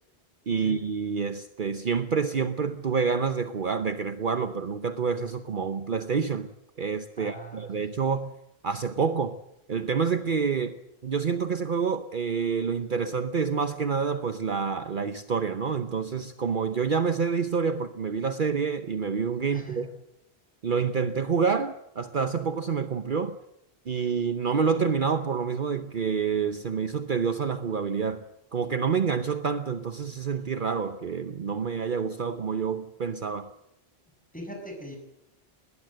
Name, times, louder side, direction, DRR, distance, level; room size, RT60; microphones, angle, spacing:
voice 1, 0.5-6.5 6.8-8.3 8.6-9.4 9.7-19.9 20.6-23.4 23.9-28.2 28.5-33.5, right 6 dB, 55° right, 10 dB, 1.0 m, -28 dB
voice 2, 7.2-7.8 19.5-19.9 34.3-35.0, equal, 5° left, 2 dB, 6.8 m, -40 dB
21.0 x 18.5 x 7.8 m, 0.84 s
omnidirectional pair, 1.1 m